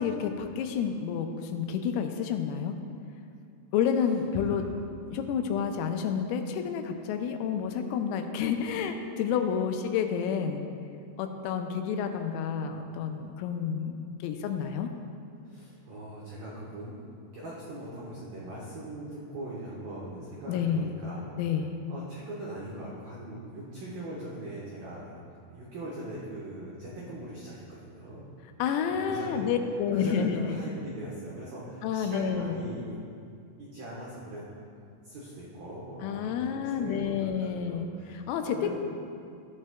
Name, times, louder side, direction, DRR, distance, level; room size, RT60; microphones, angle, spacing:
voice 1, 0.0-2.8 3.7-4.7 5.0-10.7 11.2-14.9 20.5-20.9 21.4-21.7 28.6-30.6 31.8-32.8 36.0-38.8, left 7 dB, 85° left, 5 dB, 3.3 m, -30 dB
voice 2, 4.4-4.7 15.4-16.9 17.3-21.3 21.9-25.2 25.5-28.2 28.9-29.5 29.9-33.0 33.6-34.4 35.0-38.8, right 1 dB, 75° right, -6 dB, 2.0 m, -41 dB
14.5 x 9.7 x 2.2 m, 2.4 s
omnidirectional pair, 5.9 m